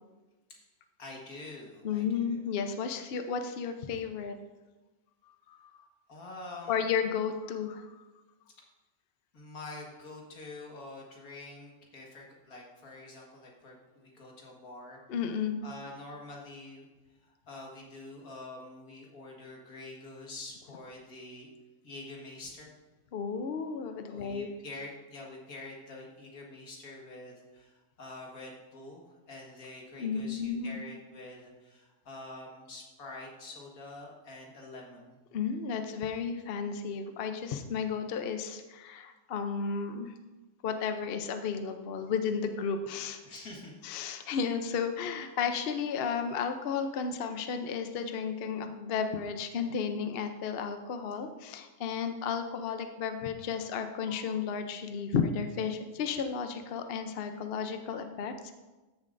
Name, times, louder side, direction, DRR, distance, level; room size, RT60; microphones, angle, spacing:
voice 1, 1.0-2.4 6.1-6.9 9.3-15.0 15.6-16.9 17.2-21.5 21.8-22.7 24.1-35.2 43.2-43.7 44.5-44.6, left 2 dB, 85° left, -1 dB, 2.2 m, -46 dB
voice 2, 1.8-4.4 5.5-5.9 6.7-8.0 15.1-15.6 23.1-24.5 30.0-30.8 35.3-40.1 40.6-43.2 43.8-58.5, left 6 dB, 55° left, 7 dB, 0.7 m, -33 dB
14.0 x 7.1 x 2.6 m, 1.2 s
omnidirectional pair, 1.5 m